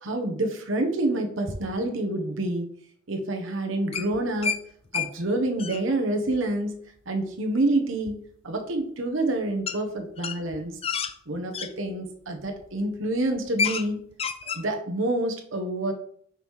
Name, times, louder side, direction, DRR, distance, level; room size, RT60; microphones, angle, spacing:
voice 1, 0.0-2.7 3.1-4.6 4.9-6.8 7.1-10.8 11.3-14.0 14.5-15.9, right 2 dB, 75° right, 3 dB, 1.0 m, -27 dB
sound 1, 3.9-4.6 4.9-5.1 5.4-5.8 8.1-8.2 9.7-9.8 10.2-11.7 12.4-12.6 13.0-13.1 13.4-13.9 14.1-14.6, left 6 dB, 30° left, 0.3 m, -29 dB
6.1 x 5.4 x 3.1 m, 0.63 s
head